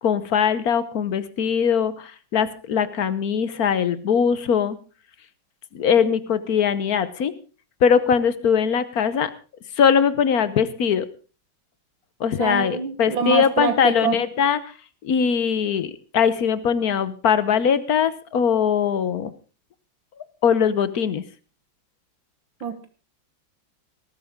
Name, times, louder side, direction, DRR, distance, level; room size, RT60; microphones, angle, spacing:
voice 1, 0.0-4.8 5.7-7.3 7.8-9.3 9.8-11.1 12.2-14.6 15.0-19.3 20.4-21.2, left 7 dB, 55° left, 15 dB, 1.3 m, -21 dB
voice 2, 12.4-14.2 22.6-22.9, right 6 dB, 75° right, 9 dB, 2.0 m, -25 dB
19.0 x 13.5 x 3.6 m, 0.34 s
omnidirectional pair, 2.2 m